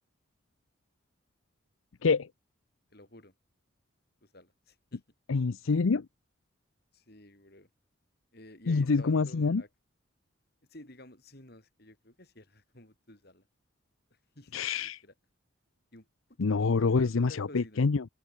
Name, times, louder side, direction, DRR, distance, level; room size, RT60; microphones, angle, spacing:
voice 1, 2.9-3.3 4.2-5.0 6.9-7.7 8.3-9.7 10.7-13.5 14.3-15.1 15.9-16.1 16.8-17.8, left 1 dB, 50° left, 4.3 m, -52 dB
voice 2, 5.3-6.1 8.7-9.6 14.5-15.0 16.4-18.1, left 4 dB, 80° left, 0.6 m, -26 dB
open air
head